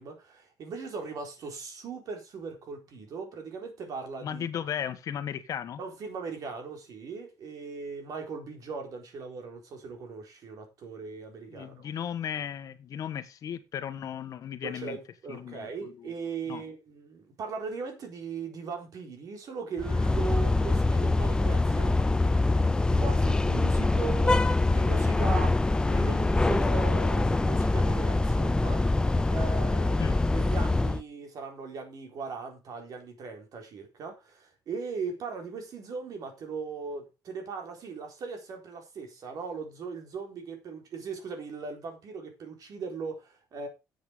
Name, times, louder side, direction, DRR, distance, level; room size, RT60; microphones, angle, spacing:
voice 1, 0.0-4.5 5.8-11.9 14.6-22.2 22.5-43.7, right 5 dB, 55° right, 4.1 m, -39 dB
voice 2, 4.2-5.8 11.5-15.0 15.3-16.1 16.5-16.6 30.0-30.2, left 9 dB, 55° left, 1.5 m, -36 dB
sound 1, 19.8-31.0, left 2 dB, 10° left, 0.6 m, -24 dB
8.7 x 8.0 x 5.1 m
cardioid pair, 120°, 7 cm